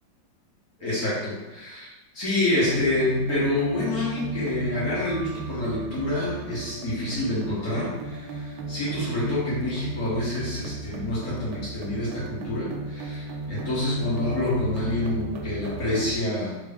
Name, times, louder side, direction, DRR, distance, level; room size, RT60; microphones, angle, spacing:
voice 1, 0.8-16.6, left 1 dB, 50° left, -8 dB, 1.6 m, -27 dB
sound 1, 2.6-16.2, right 3 dB, 85° right, 1.4 m, -36 dB
3.7 x 2.9 x 3.4 m, 1.1 s
omnidirectional pair, 2.2 m